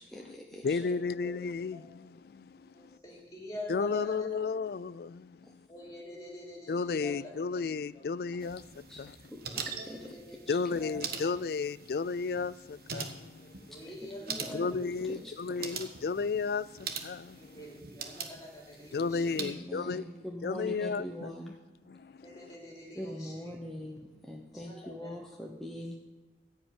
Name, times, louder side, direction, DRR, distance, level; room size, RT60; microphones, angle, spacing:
voice 1, 0.0-0.8 5.4-5.5 8.9-9.0 9.3-10.2 10.5-10.6 13.7-14.7 15.0-15.2 15.6-15.7 19.4-21.5 22.9-26.0, equal, ahead, 1.0 m, -43 dB
voice 2, 0.6-3.0 3.7-5.9 6.7-9.2 10.5-13.7 14.5-17.8 18.9-20.0 20.4-21.3 21.9-22.6, left 4 dB, 55° left, 0.3 m, -34 dB
voice 3, 2.6-4.3 5.7-7.2 8.0-8.1 9.5-10.9 13.3-14.9 15.9-16.0 17.3-19.4 22.2-23.5 24.6-25.1, left 1 dB, 20° left, 3.7 m, -46 dB
sound 1, 8.4-19.5, right 6 dB, 55° right, 1.3 m, -43 dB
15.0 x 5.5 x 8.9 m
head